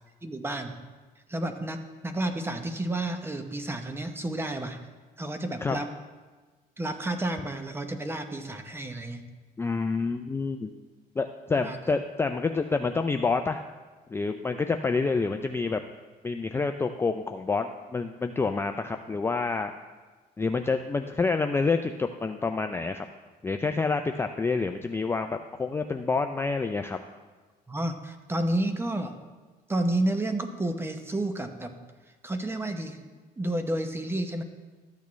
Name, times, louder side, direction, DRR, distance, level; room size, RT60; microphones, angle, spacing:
voice 1, 0.2-0.8 1.3-4.8 5.2-5.9 6.8-9.3 11.6-12.0 27.7-29.1 29.7-31.7 32.2-33.0 33.4-34.4, right 1 dB, 15° right, 7 dB, 0.9 m, -31 dB
voice 2, 9.6-10.7 11.2-13.6 14.1-15.8 16.2-19.7 20.4-23.1 23.4-27.0, left 4 dB, 15° left, 6 dB, 0.4 m, -28 dB
13.5 x 8.3 x 3.1 m, 1.3 s
cardioid pair, 110°, 17 cm